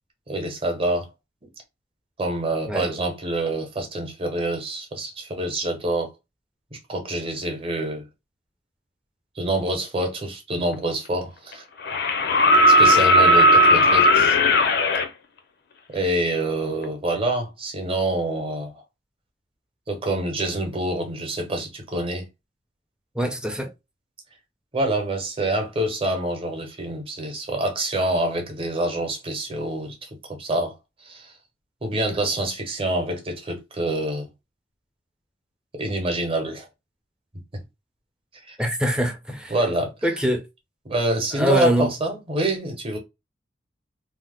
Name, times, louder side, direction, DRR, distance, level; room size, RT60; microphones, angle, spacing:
voice 1, 0.3-1.1 2.2-6.1 6.9-8.0 9.4-11.6 12.7-14.4 15.9-18.7 19.9-22.3 24.7-30.7 31.0-31.3 31.8-34.3 35.8-36.7 37.5-37.6 38.5-38.6 39.5-39.9 40.9-43.0, right 1 dB, 30° right, 0.9 m, -26 dB
sound 1, 10.7-10.8 11.8-15.1 16.8-16.9, equal, 60° left, 0.5 m, -16 dB
voice 2, 23.1-23.7 38.6-39.6 40.0-40.4 41.3-41.9, equal, 5° right, 0.5 m, -23 dB
2.8 x 2.0 x 3.5 m
head